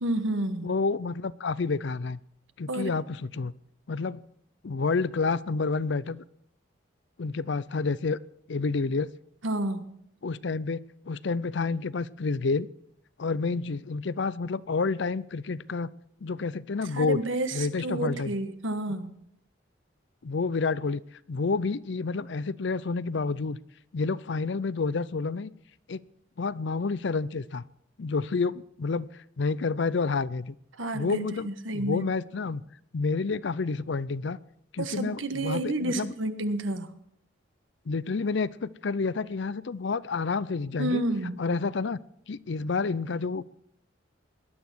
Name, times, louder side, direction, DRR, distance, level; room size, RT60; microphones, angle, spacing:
voice 1, 0.0-0.7 2.7-2.9 9.4-9.9 16.9-19.1 30.8-32.0 34.8-36.9 40.8-41.4, right 1 dB, 85° right, 9 dB, 1.4 m, -30 dB
voice 2, 0.6-2.2 2.6-3.5 3.9-4.2 4.6-6.2 7.2-8.2 8.5-9.1 10.2-12.7 13.2-15.9 16.2-17.2 17.5-18.3 20.2-21.0 21.3-23.6 23.9-25.5 25.9-26.0 26.4-27.6 28.0-29.1 29.4-30.5 30.9-32.6 32.9-34.4 34.7-36.1 37.9-41.0 41.4-42.0 42.3-43.4, left 4 dB, 65° left, 19 dB, 0.5 m, -29 dB
19.0 x 11.5 x 6.2 m, 0.72 s
head